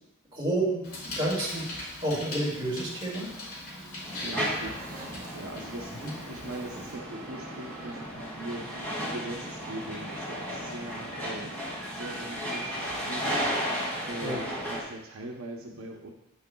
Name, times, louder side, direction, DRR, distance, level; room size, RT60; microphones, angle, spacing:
voice 1, 0.3-3.3 6.0-6.1 14.2-14.4, right 1 dB, 25° right, -5 dB, 2.3 m, -30 dB
Bicycle, 0.8-6.9, left 2 dB, 85° left, 2.6 m, -41 dB
sound 1, 4.0-14.8, equal, 10° left, 2.4 m, -34 dB
voice 2, 4.2-13.8 14.0-16.1, right 1 dB, 80° right, 0 dB, 0.8 m, -41 dB
sound 2, 4.6-5.5 6.6-9.7, right 2 dB, 40° right, 1.6 m, -48 dB
9.2 x 6.4 x 2.3 m, 0.85 s
head